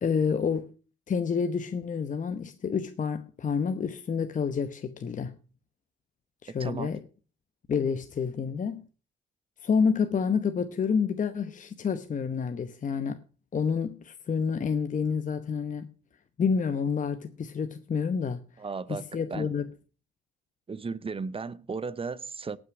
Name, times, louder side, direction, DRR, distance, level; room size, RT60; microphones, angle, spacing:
voice 1, 0.0-0.7 1.1-5.4 6.4-7.0 7.7-8.9 9.6-13.2 13.5-15.9 16.4-18.4 18.9-19.7, left 6 dB, 40° left, 0.9 m, -28 dB
voice 2, 6.6-6.9 18.6-19.0 19.3-19.5 20.7-22.6, right 4 dB, 30° right, 0.7 m, -35 dB
18.0 x 6.3 x 5.9 m
cardioid pair, 90°, 20 cm